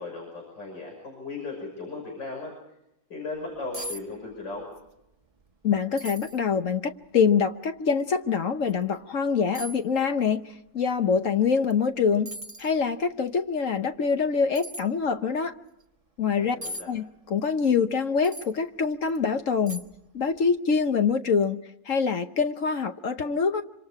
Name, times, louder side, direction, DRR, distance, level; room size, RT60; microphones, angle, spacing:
voice 1, 0.0-2.5 3.1-4.7 16.3-16.9, left 3 dB, 80° left, 6.8 m, -37 dB
sound 1, 3.4-3.5 3.7-4.0 4.3-4.9 5.2-5.3 6.0-6.4 7.0-7.1 8.6-8.8 9.5-9.8 11.7-11.9 12.3-12.8 14.5-14.8 16.6-16.8 18.2-18.5 19.1-19.2 19.7-20.1 20.4-20.5, right 1 dB, 20° right, 1.2 m, -38 dB
voice 2, 5.6-12.3 12.6-15.6 16.2-16.6 16.9-19.8 20.1-21.6 21.9-23.6, left 6 dB, 50° left, 1.2 m, -25 dB
26.5 x 26.0 x 4.8 m
omnidirectional pair, 1.9 m